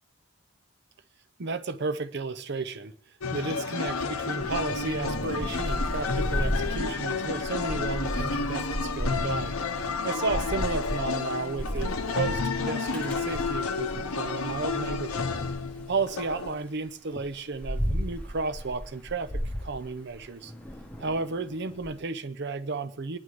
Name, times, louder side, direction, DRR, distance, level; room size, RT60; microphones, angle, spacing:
voice 1, 1.4-2.9 3.3-9.5 10.0-15.3 15.9-19.3 19.6-20.5 21.0-23.2, right 3 dB, 50° right, 13 dB, 0.6 m, -33 dB
sound 1, 3.2-16.6, left 4 dB, 85° left, 0.8 m, -31 dB
Thunder / Rain, 4.4-14.1 14.6-16.5 17.1-21.9, equal, 5° left, 1.0 m, -34 dB
23.5 x 10.5 x 3.2 m, 0.67 s
head